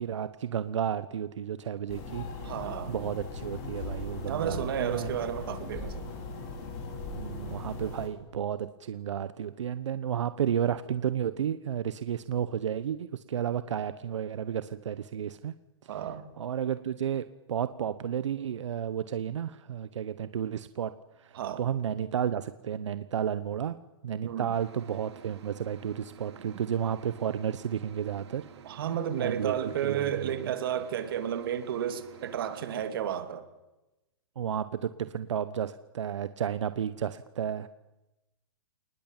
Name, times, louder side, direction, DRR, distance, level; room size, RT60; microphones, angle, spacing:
voice 1, 0.0-2.6 2.9-5.2 7.2-15.5 15.8-16.1 16.4-23.8 24.0-28.5 29.2-30.5 34.4-37.7, right 9 dB, 85° right, 13 dB, 1.1 m, -32 dB
sound 1, 1.9-8.1, left 3 dB, 30° left, 4.0 m, -39 dB
voice 2, 2.4-2.9 4.3-6.1 15.9-16.2 21.3-21.6 24.2-24.5 26.5-26.6 28.6-33.5, right 9 dB, 50° right, 8 dB, 2.8 m, -32 dB
sound 2, 24.5-32.9, right 8 dB, 65° right, 3.3 m, -51 dB
28.0 x 20.0 x 9.1 m, 1.0 s
hypercardioid pair, 170°, 15 cm